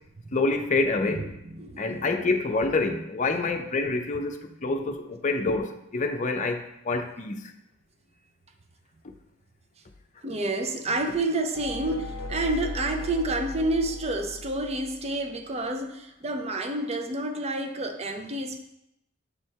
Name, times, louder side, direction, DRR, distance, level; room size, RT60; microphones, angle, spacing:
voice 1, 0.3-1.3 1.8-7.4, left 3 dB, 40° left, 5 dB, 0.6 m, -27 dB
voice 2, 1.1-2.4 2.9-3.0 10.2-18.6, right 2 dB, 30° right, 5 dB, 0.6 m, -29 dB
sound 1, 11.5-15.3, left 3 dB, 90° left, 0.5 m, -37 dB
7.3 x 3.4 x 4.5 m, 0.81 s
head